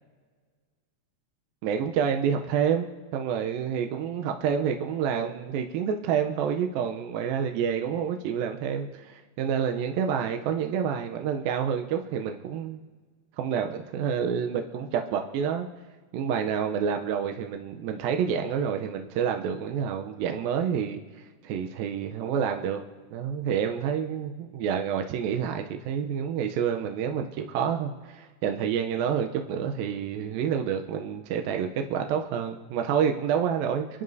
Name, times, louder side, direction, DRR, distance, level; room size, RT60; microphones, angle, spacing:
voice 1, 1.6-2.9 3.1-12.8 13.4-15.7 16.1-21.0 21.4-22.8 23.1-33.9, right 7 dB, 80° right, 4 dB, 2.2 m, -28 dB
28.0 x 10.5 x 2.7 m, 1.4 s
omnidirectional pair, 4.8 m